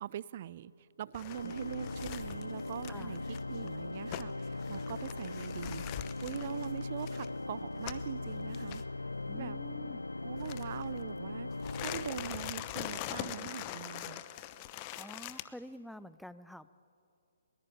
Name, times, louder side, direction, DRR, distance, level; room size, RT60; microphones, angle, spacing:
voice 1, 0.0-5.8 6.2-8.8 9.3-9.6 10.2-14.2, right 11 dB, 45° right, 20 dB, 0.6 m, -42 dB
sound 1, 1.1-8.2 8.5-8.8 10.4-11.0 11.5-15.4, left 13 dB, 30° left, 0.9 m, -43 dB
Organ, 1.3-13.1, left 2 dB, 90° left, 0.6 m, -40 dB
voice 2, 9.3-10.0 14.9-16.7, equal, ahead, 15 dB, 0.5 m, -48 dB
21.5 x 19.5 x 9.3 m, 2.4 s
figure-of-eight pair, 135°, 0 cm